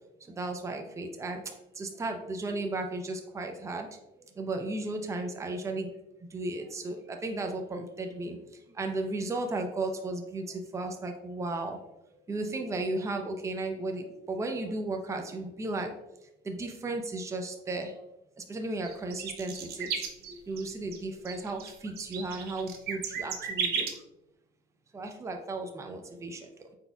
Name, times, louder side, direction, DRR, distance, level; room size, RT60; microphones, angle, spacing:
voice 1, 0.3-1.4 1.8-3.9 4.4-5.9 6.3-8.4 8.7-11.8 12.3-15.9 16.5-18.0 18.5-23.9 24.9-26.5, right 2 dB, 15° right, 4 dB, 0.5 m, -35 dB
sound 1, 18.8-20.6 20.9-21.0 21.2-23.9, right 7 dB, 70° right, 0.7 m, -34 dB
4.8 x 4.2 x 2.3 m, 0.88 s
cardioid pair, 110°, 17 cm